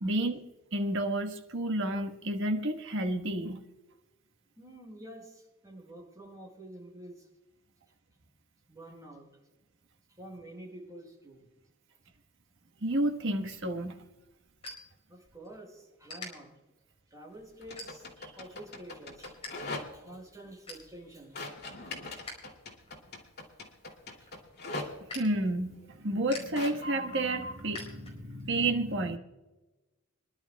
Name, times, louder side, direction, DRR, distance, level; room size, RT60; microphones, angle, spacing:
voice 1, 0.0-0.4 0.7-3.6 12.8-14.0 25.1-29.2, right 1 dB, 60° right, 5 dB, 1.4 m, -30 dB
voice 2, 4.6-7.3 8.7-9.3 10.2-11.5 15.1-16.5 17.1-18.1 18.3-21.4 21.8-21.9 22.3-22.4 24.2-24.3, right 1 dB, 15° right, -2 dB, 5.4 m, -49 dB
sound 1, 13.6-15.6 16.0-16.3 16.9-17.1 17.7-18.3 18.7-19.5 19.8-19.9 20.3-20.9 21.4-22.5 22.8-28.5, left 2 dB, 30° left, 4.8 m, -47 dB
sound 2, 17.6-20.2 21.3-24.9 26.5-27.7, left 2 dB, 50° left, 2.7 m, -40 dB
26.0 x 12.0 x 2.3 m, 1.1 s
head